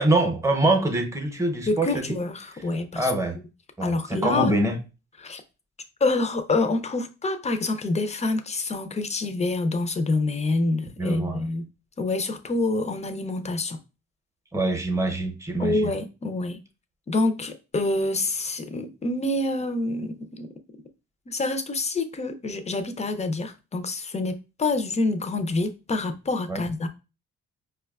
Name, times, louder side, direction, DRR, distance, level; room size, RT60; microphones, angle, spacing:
voice 1, 0.0-2.2 2.9-3.4 3.8-4.8 11.0-11.4 14.5-15.9 26.5-26.7, right 2 dB, 10° right, 0.7 m, -24 dB
voice 2, 1.7-3.1 3.8-4.5 5.2-5.4 6.0-11.7 12.0-13.8 15.6-16.6 17.1-20.5 21.3-26.9, left 2 dB, 25° left, 0.5 m, -27 dB
4.7 x 2.2 x 2.3 m
cardioid pair, 90°, 30 cm